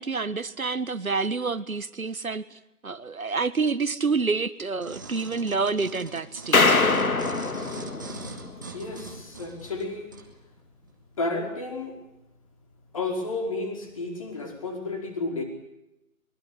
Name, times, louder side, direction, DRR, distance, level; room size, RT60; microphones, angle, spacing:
voice 1, 0.0-6.8, right 4 dB, 70° right, 13 dB, 1.7 m, -28 dB
sound 1, 4.8-10.3 10.9-11.0, right 3 dB, 15° right, 1.4 m, -42 dB
sound 2, 6.5-8.9, left 3 dB, 70° left, 3.0 m, -23 dB
voice 2, 8.7-10.1 11.2-11.9 12.9-15.4, left 3 dB, 25° left, 4 dB, 4.8 m, -31 dB
24.0 x 23.0 x 9.4 m, 0.88 s
figure-of-eight pair, 170°, 44 cm